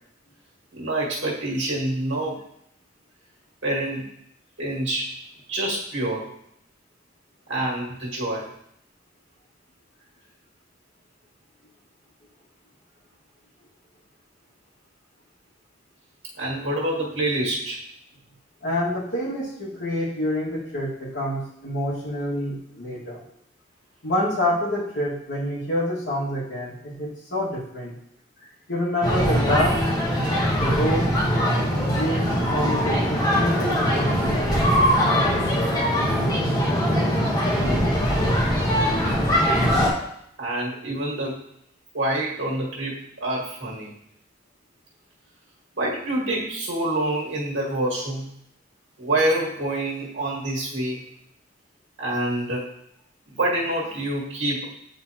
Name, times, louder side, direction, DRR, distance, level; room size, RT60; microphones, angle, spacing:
voice 1, 0.7-2.4 3.6-4.1 4.6-5.2 5.5-6.3 7.5-8.5 16.4-17.8 40.4-41.4 41.9-44.0 45.8-48.3 49.0-51.0 52.0-52.7 53.3-54.6, right 1 dB, 85° right, -4 dB, 1.7 m, -26 dB
voice 2, 18.6-23.2 24.0-27.9 28.7-29.8 30.5-31.1 31.7-34.8, left 1 dB, 80° left, -5 dB, 1.9 m, -27 dB
sound 1, 29.0-39.9, equal, 20° left, 1.2 m, -21 dB
8.9 x 3.9 x 2.9 m, 0.73 s
head